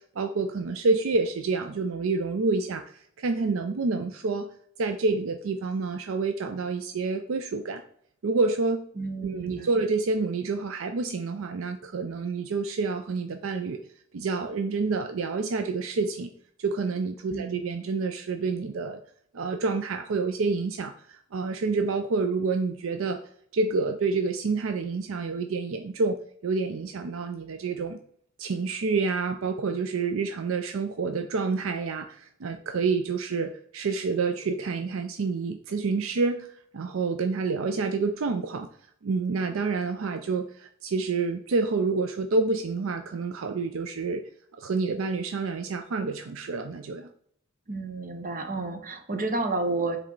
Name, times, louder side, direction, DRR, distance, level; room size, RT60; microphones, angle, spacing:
voice 1, 0.2-2.8 3.2-4.5 4.8-7.8 8.2-8.9 9.2-13.8 14.1-16.3 16.6-19.0 19.3-23.2 23.5-28.0 28.4-38.7 39.0-44.3 44.6-47.1, right 4 dB, 75° right, 6 dB, 0.5 m, -28 dB
voice 2, 9.0-9.7 17.3-17.6 47.7-50.0, right 3 dB, 45° right, 5 dB, 0.9 m, -31 dB
7.5 x 3.2 x 3.9 m, 0.63 s
head